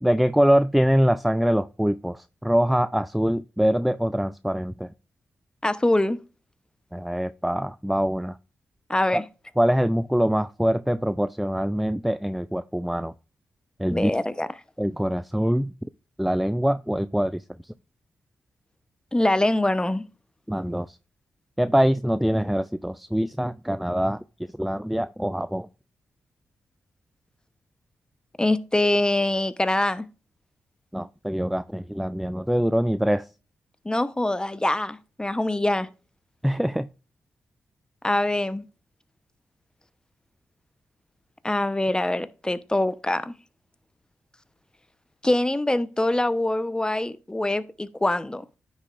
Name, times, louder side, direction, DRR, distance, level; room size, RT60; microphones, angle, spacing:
voice 1, 0.0-4.9 6.9-8.3 9.1-9.2 9.6-13.1 13.8-14.1 14.8-15.7 16.2-17.4 20.5-20.9 21.6-24.2 24.6-25.7 30.9-33.3 36.4-36.9, equal, ahead, 0.4 m, -24 dB
voice 2, 5.6-6.2 8.9-9.2 13.9-14.5 19.1-20.0 28.4-30.1 33.8-35.9 38.0-38.7 41.4-43.3 45.2-48.4, left 1 dB, 15° left, 0.8 m, -24 dB
9.8 x 6.9 x 2.5 m
supercardioid pair, 50°, 5 cm